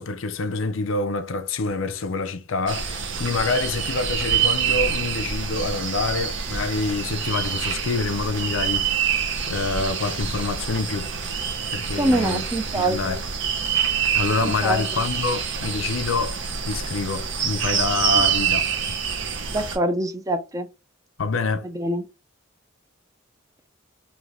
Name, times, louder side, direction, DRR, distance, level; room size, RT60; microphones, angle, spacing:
voice 1, 0.0-11.1 11.7-12.4 12.7-13.2 14.1-18.6 21.2-21.7, left 3 dB, 75° left, 0.6 m, -26 dB
sound 1, 2.7-19.8, right 7 dB, 60° right, 0.8 m, -26 dB
voice 2, 12.0-13.2 14.4-14.8 18.1-18.2 19.5-20.7 21.6-22.1, right 1 dB, 15° right, 0.5 m, -25 dB
3.2 x 3.1 x 3.7 m
head